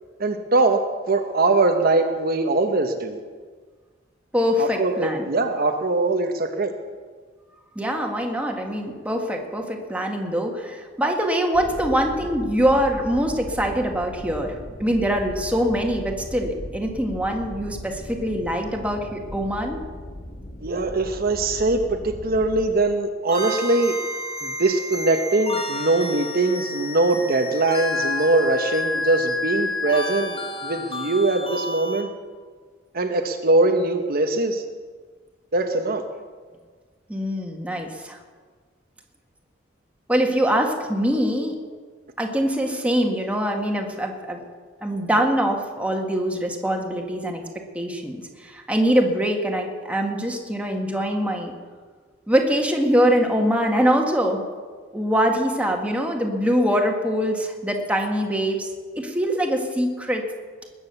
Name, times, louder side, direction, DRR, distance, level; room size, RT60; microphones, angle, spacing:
voice 1, 0.2-3.2 4.6-6.7 20.6-24.0 24.4-32.1 32.9-34.6 35.5-36.0, right 2 dB, 50° right, 5 dB, 1.0 m, -22 dB
voice 2, 4.3-5.3 7.8-19.8 37.1-38.2 40.1-41.6 42.2-44.4 44.8-51.5 52.3-54.4 54.9-58.7 59.0-60.2, equal, 5° right, 2 dB, 1.8 m, -23 dB
sound 1, 11.5-22.6, equal, 50° left, 3.7 m, -38 dB
sound 2, 23.3-32.0, left 2 dB, 30° left, 1.9 m, -30 dB
20.5 x 8.9 x 6.9 m, 1.5 s
head